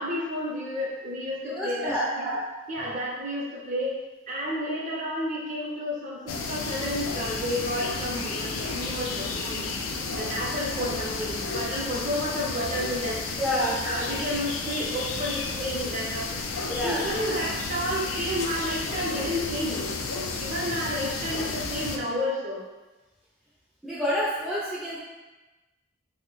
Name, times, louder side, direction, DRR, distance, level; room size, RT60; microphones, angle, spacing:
voice 1, 0.0-2.4 2.7-3.9 4.3-9.7 10.2-13.2 13.8-16.3 16.8-19.8 20.4-22.6, equal, 40° right, -4 dB, 0.7 m, -31 dB
voice 2, 1.4-2.0 13.4-13.8 16.7-17.1 23.8-25.0, equal, ahead, -9 dB, 0.5 m, -28 dB
sound 1, 6.3-22.0, left 3 dB, 90° left, 0.4 m, -32 dB
3.3 x 2.1 x 3.8 m, 1.1 s
head